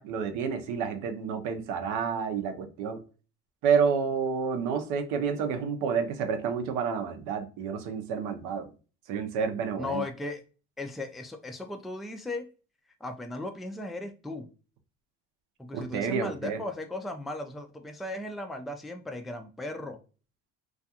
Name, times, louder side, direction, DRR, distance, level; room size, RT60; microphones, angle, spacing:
voice 1, 0.0-3.0 3.6-8.7 9.1-10.0 15.7-16.6, right 6 dB, 80° right, 0.6 m, -29 dB
voice 2, 9.8-10.4 10.8-12.5 13.0-14.5 15.6-20.0, left 2 dB, ahead, 0.3 m, -36 dB
2.4 x 2.3 x 2.7 m
supercardioid pair, 80°, 30 cm